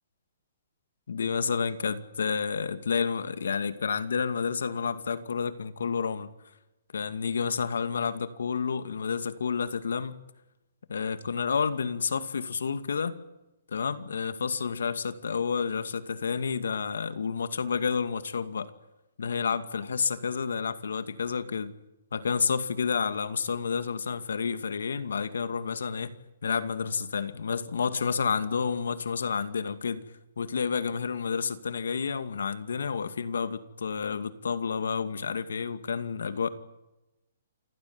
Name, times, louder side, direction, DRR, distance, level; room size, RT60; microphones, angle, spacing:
voice 1, 1.1-6.3 6.9-10.2 10.9-13.2 13.7-18.7 19.2-21.7 22.1-26.2 26.4-30.0 30.4-36.5, left 6 dB, 90° left, 11 dB, 2.4 m, -30 dB
28.0 x 16.5 x 9.8 m, 0.95 s
hypercardioid pair, 170°, 0 cm